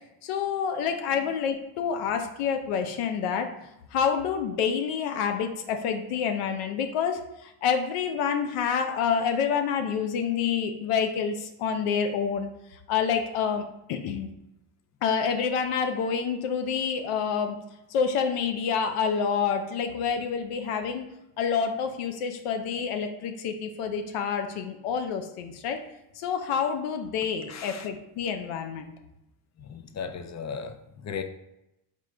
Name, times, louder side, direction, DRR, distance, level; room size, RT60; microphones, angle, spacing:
voice 1, 0.2-3.5 3.9-12.5 12.9-14.3 15.0-17.6 17.9-21.1 21.4-25.8 26.2-28.9, left 6 dB, 85° left, 6 dB, 0.6 m, -28 dB
voice 2, 27.5-27.9 29.6-31.2, left 6 dB, 35° left, 8 dB, 0.5 m, -36 dB
3.7 x 3.6 x 3.2 m, 0.87 s
supercardioid pair, 55°, 50 cm